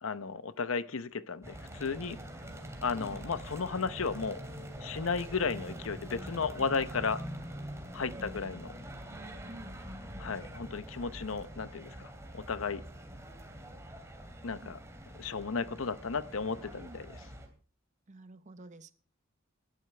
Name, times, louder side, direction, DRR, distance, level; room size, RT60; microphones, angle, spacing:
voice 1, 0.0-2.2 2.8-4.4 4.8-7.2 7.9-8.7 10.2-12.8 14.4-14.8 15.2-17.2, left 5 dB, 80° left, 14 dB, 0.8 m, -34 dB
sound 1, 1.4-17.5, equal, 15° right, 2.8 m, -44 dB
voice 2, 18.1-18.9, right 2 dB, 35° right, 12 dB, 0.8 m, -50 dB
19.0 x 11.5 x 3.3 m, 0.40 s
head